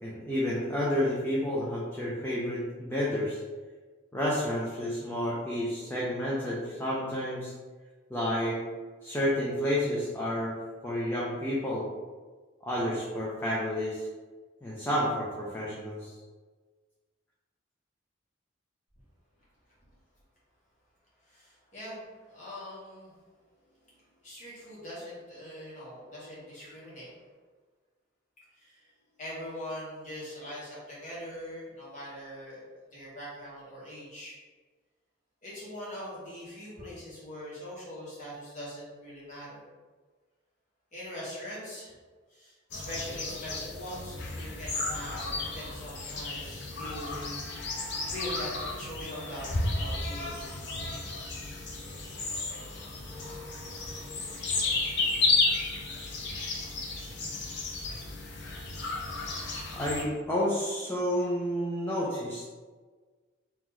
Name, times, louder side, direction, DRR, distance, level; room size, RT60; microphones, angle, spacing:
voice 1, 0.0-3.4 4.1-7.5 8.1-8.6 9.0-11.9 12.6-14.1 14.6-16.1 59.7-62.5, equal, 10° left, -6 dB, 0.5 m, -30 dB
voice 2, 21.2-23.1 24.2-27.1 28.6-28.9 29.2-32.6 32.9-34.4 35.4-39.6 40.9-41.9 42.3-47.4 47.7-50.4, equal, 40° left, -8 dB, 1.5 m, -42 dB
sound 1, 42.7-60.0, left 3 dB, 60° left, 0.7 m, -33 dB
3.0 x 2.9 x 3.7 m, 1.4 s
head